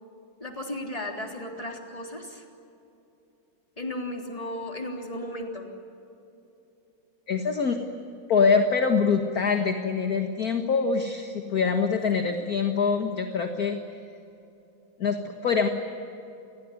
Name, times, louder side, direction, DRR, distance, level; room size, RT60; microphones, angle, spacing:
voice 1, 0.4-2.4 3.8-5.7 11.6-11.7 12.1-12.3, left 1 dB, 15° left, 2 dB, 3.4 m, -35 dB
voice 2, 7.3-7.8 8.3-13.8 15.0-15.7, left 5 dB, 45° left, 5 dB, 1.9 m, -24 dB
29.0 x 21.5 x 9.6 m, 2.9 s
omnidirectional pair, 2.4 m